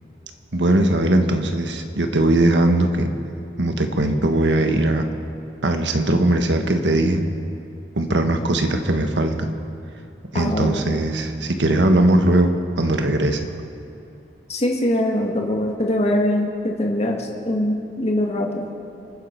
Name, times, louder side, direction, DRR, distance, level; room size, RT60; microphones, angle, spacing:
voice 1, 0.5-3.1 3.6-5.1 5.6-7.2 7.9-9.5 10.3-13.5, right 1 dB, 85° right, 6 dB, 1.4 m, -19 dB
voice 2, 10.3-10.8 14.5-18.6, left 1 dB, 40° left, 0 dB, 2.0 m, -22 dB
29.0 x 9.7 x 4.6 m, 2.7 s
head